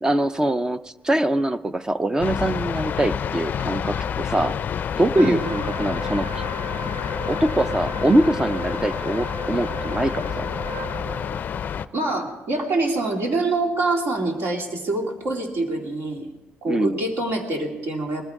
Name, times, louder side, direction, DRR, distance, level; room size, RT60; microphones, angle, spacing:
voice 1, 0.0-4.5 5.0-6.4 7.3-10.5 16.7-17.0, right 1 dB, 15° right, 13 dB, 0.4 m, -23 dB
sound 1, 2.2-11.9, left 8 dB, 45° left, 0.4 m, -28 dB
Wind instrument woodwind instrument, 5.1-11.4, right 3 dB, 85° right, 1.1 m, -35 dB
voice 2, 5.2-5.5 11.9-16.3 16.6-18.2, right 2 dB, 65° right, 1 dB, 2.7 m, -25 dB
20.0 x 14.5 x 3.6 m, 1.2 s
cardioid pair, 140°, 4 cm